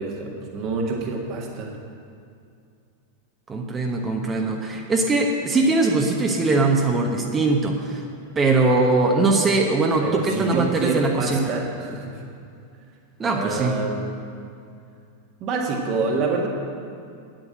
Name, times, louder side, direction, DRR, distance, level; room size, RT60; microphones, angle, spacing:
voice 1, 0.0-1.8 10.0-12.2 13.2-14.0 15.4-16.5, right 4 dB, 35° right, 1 dB, 1.7 m, -27 dB
voice 2, 3.5-8.0 8.3-11.5 13.2-13.8, right 3 dB, 20° right, 1 dB, 1.1 m, -21 dB
9.7 x 9.1 x 7.6 m, 2.5 s
figure-of-eight pair, 90°, 0 cm